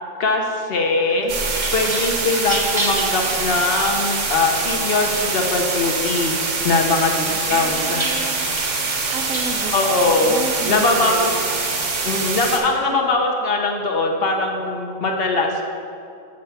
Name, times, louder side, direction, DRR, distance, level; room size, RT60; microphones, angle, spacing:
voice 1, 0.2-1.3 1.7-6.4 6.6-8.1 9.7-11.3 12.0-15.6, left 3 dB, 50° left, 2 dB, 1.0 m, -21 dB
sound 1, 1.1-4.7 5.1-6.0 6.4-9.5, right 2 dB, 25° right, 0.9 m, -31 dB
sound 2, 1.3-12.6, right 4 dB, 65° right, 1.3 m, -24 dB
voice 2, 7.3-8.5 9.1-11.6, right 5 dB, 90° right, 5 dB, 1.2 m, -32 dB
6.5 x 5.6 x 6.9 m, 2.5 s
omnidirectional pair, 1.4 m